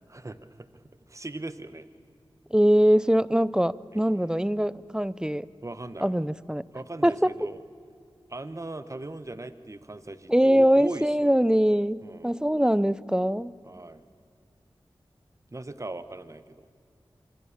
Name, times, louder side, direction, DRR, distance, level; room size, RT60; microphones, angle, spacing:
voice 1, 0.1-0.7 1.1-1.9 5.6-6.1 6.7-7.6 8.3-11.3 12.0-12.3 13.6-14.0 15.5-16.7, right 2 dB, 35° right, 13 dB, 1.1 m, -39 dB
voice 2, 2.5-5.5 6.0-6.6 7.0-7.3 10.3-13.5, equal, 10° right, 19 dB, 0.5 m, -22 dB
25.5 x 24.5 x 7.2 m, 2.2 s
wide cardioid pair, 55°, 9 cm